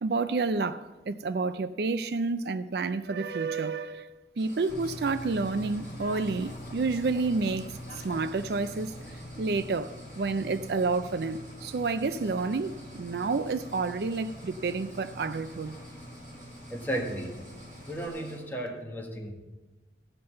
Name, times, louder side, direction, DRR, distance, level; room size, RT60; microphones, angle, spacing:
voice 1, 0.0-7.7 8.0-9.0 9.4-15.8, right 4 dB, 65° right, 0.4 m, -29 dB
sound 1, 4.4-18.4, equal, 45° right, 5.1 m, -50 dB
Bird / Train, 4.7-18.1, left 1 dB, 50° left, 1.3 m, -45 dB
voice 2, 16.7-17.4 17.9-19.3, right 1 dB, 10° left, 1.5 m, -34 dB
14.5 x 5.4 x 7.7 m
head